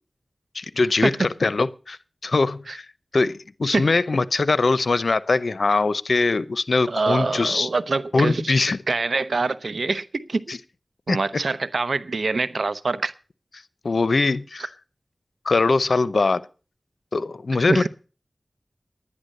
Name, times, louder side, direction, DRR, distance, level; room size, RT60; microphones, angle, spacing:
voice 1, 0.5-2.9 3.1-7.7 8.1-8.8 10.5-10.6 11.1-11.2 13.8-14.7 15.5-16.4 17.1-17.9, left 3 dB, 80° left, 0.7 m, -22 dB
voice 2, 6.9-8.4 8.9-10.4 11.1-13.1 17.7-17.9, right 3 dB, 80° right, 0.8 m, -24 dB
11.5 x 10.0 x 6.6 m
wide cardioid pair, 50°, 0 cm